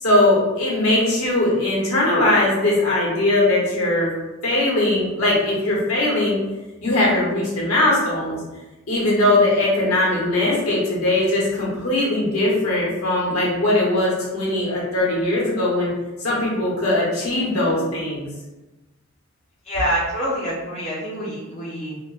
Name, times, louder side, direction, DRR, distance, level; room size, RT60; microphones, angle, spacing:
voice 1, 0.0-4.1 4.4-6.4 6.8-8.4 8.9-15.9 16.2-18.2, left 1 dB, 75° left, -6 dB, 0.9 m, -20 dB
voice 2, 19.6-22.0, equal, 30° left, -8 dB, 0.4 m, -26 dB
2.5 x 2.1 x 2.3 m, 1.1 s
head